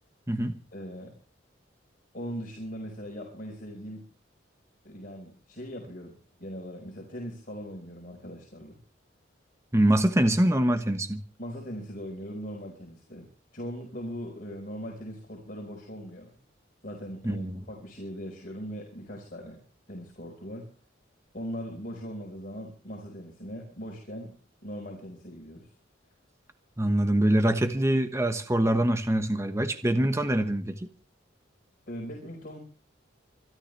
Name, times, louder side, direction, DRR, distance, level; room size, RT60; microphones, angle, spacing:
voice 1, 0.7-1.1 2.1-4.0 4.8-8.8 11.4-13.3 13.5-16.4 16.8-19.6 19.9-20.7 21.3-24.3 24.6-25.7 31.9-32.6, equal, 45° left, 5.0 m, -40 dB
voice 2, 9.7-11.2 17.2-17.6 26.8-30.9, right 1 dB, 15° right, 1.1 m, -24 dB
27.0 x 12.5 x 3.3 m
head